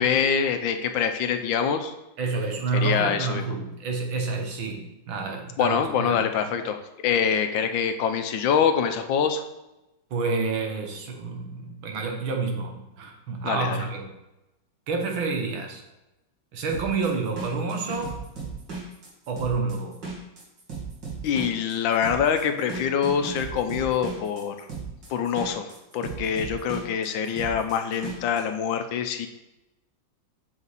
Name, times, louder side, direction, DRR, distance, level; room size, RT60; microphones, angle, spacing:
voice 1, 0.0-1.9 2.7-3.4 5.6-9.4 13.4-13.8 21.2-24.7 25.1-29.3, left 7 dB, 80° left, 8 dB, 1.4 m, -25 dB
voice 2, 2.2-6.2 10.1-14.1 14.9-15.8 16.5-18.2 19.3-20.0, right 4 dB, 90° right, 2 dB, 2.1 m, -29 dB
sound 1, 16.7-28.4, right 4 dB, 65° right, 2.9 m, -36 dB
7.7 x 6.1 x 4.1 m, 0.95 s
omnidirectional pair, 2.1 m